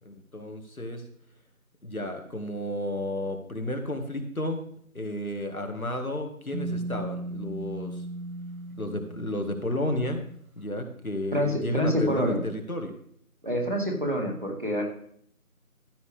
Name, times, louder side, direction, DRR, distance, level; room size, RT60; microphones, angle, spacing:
voice 1, 0.1-1.0 1.8-4.7 4.9-8.1 8.8-10.3 10.6-12.9, left 1 dB, 70° left, 5 dB, 2.0 m, -32 dB
sound 1, 6.5-10.4, right 2 dB, 70° right, 1.4 m, -37 dB
voice 2, 11.3-12.4 13.4-14.8, equal, 35° right, 1 dB, 2.0 m, -27 dB
14.0 x 8.8 x 3.5 m, 0.65 s
figure-of-eight pair, 175°, 44 cm